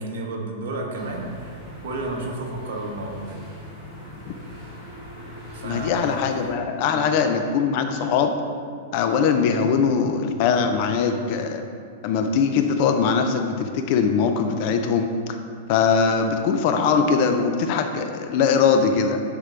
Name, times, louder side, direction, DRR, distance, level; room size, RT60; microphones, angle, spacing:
voice 1, 0.0-1.6 1.8-3.4 5.5-5.9 6.9-7.1, right 2 dB, 65° right, 0 dB, 1.1 m, -31 dB
sound 1, 0.9-6.5, equal, 10° left, 1.4 m, -41 dB
voice 2, 5.6-8.4 8.9-11.6 12.0-15.4 15.7-19.2, left 6 dB, 35° left, 6 dB, 0.4 m, -21 dB
9.3 x 3.7 x 3.3 m, 2.2 s
supercardioid pair, 175°, 0 cm